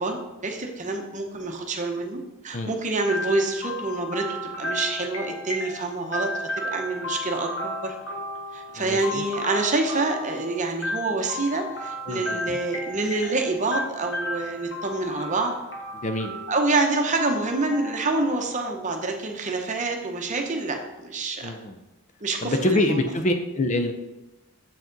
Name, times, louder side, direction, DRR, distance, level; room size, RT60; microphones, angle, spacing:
voice 1, 0.0-8.0 8.5-15.6 16.5-21.5 22.2-23.0, right 3 dB, 35° right, 3 dB, 0.8 m, -27 dB
sound 1, 3.1-18.9, left 1 dB, 55° left, 1.2 m, -34 dB
voice 2, 8.8-9.2 12.1-12.4 15.9-16.3 21.4-21.8 22.4-23.9, left 1 dB, 35° left, 6 dB, 0.5 m, -25 dB
7.4 x 4.8 x 3.9 m, 1.0 s
head